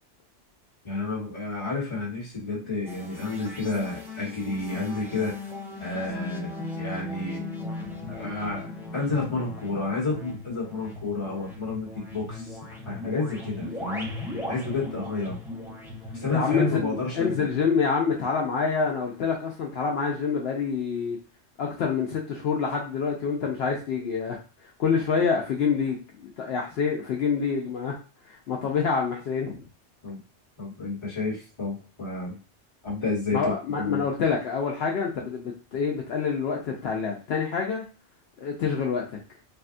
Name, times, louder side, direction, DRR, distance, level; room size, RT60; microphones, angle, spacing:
voice 1, 0.8-5.5 5.8-6.5 6.8-7.4 8.1-8.7 8.9-12.6 12.8-14.1 14.5-15.4 16.2-17.4 30.0-30.2 30.6-32.4 32.8-34.1, left 3 dB, 25° left, -4 dB, 1.2 m, -30 dB
sound 1, 2.8-17.6, left 2 dB, 5° right, 0.4 m, -38 dB
voice 2, 16.3-21.2 21.6-24.4 24.8-27.9 28.3-29.5 33.3-37.8 38.4-39.2, left 5 dB, 70° left, 0 dB, 0.8 m, -27 dB
3.5 x 2.2 x 2.5 m, 0.35 s
omnidirectional pair, 1.1 m